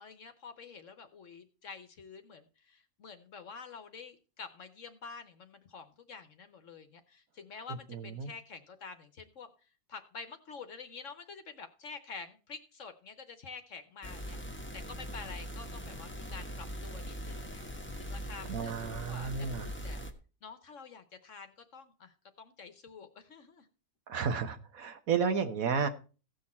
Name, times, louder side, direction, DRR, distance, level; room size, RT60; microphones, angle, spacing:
voice 1, 0.0-9.5 9.9-17.7 18.0-20.0 20.4-23.7, left 5 dB, 55° left, 9 dB, 1.2 m, -48 dB
voice 2, 7.9-8.3 18.5-19.7 24.1-25.9, right 6 dB, 65° right, 9 dB, 1.5 m, -32 dB
sound 1, 14.0-20.1, equal, 10° left, 1.1 m, -41 dB
16.0 x 6.4 x 4.2 m, 0.35 s
omnidirectional pair, 1.6 m